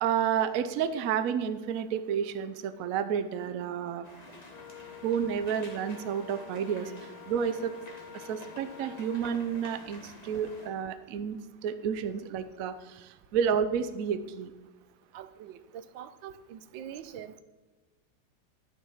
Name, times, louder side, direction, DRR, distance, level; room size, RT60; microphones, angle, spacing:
voice 1, 0.0-4.1 5.0-7.7 8.1-14.5, right 8 dB, 60° right, 11 dB, 0.9 m, -31 dB
sound 1, 4.0-10.7, left 2 dB, 25° left, 1.5 m, -49 dB
Wind instrument woodwind instrument, 4.5-9.4, left 8 dB, 70° left, 1.2 m, -49 dB
voice 2, 15.1-15.6 15.9-17.3, right 9 dB, 90° right, 12 dB, 1.4 m, -44 dB
10.5 x 6.4 x 5.6 m, 1.2 s
omnidirectional pair, 2.0 m